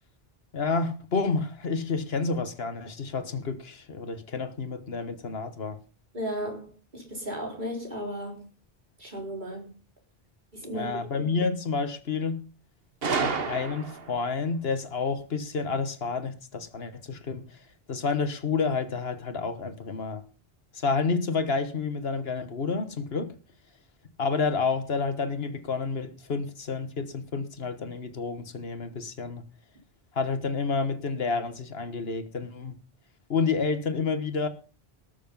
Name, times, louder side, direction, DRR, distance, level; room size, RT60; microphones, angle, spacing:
voice 1, 0.5-5.8 10.7-12.4 13.2-17.4 17.9-20.2 20.7-23.3 24.2-29.4 30.1-32.7 33.3-34.5, left 4 dB, 75° left, 1.6 m, -29 dB
voice 2, 6.1-8.5 9.0-9.8 10.5-11.0, equal, 50° right, 4.7 m, -35 dB
Gunshot gunfire, 13.0-14.2, right 4 dB, 70° right, 1.5 m, -29 dB
19.0 x 7.1 x 5.5 m
omnidirectional pair, 1.0 m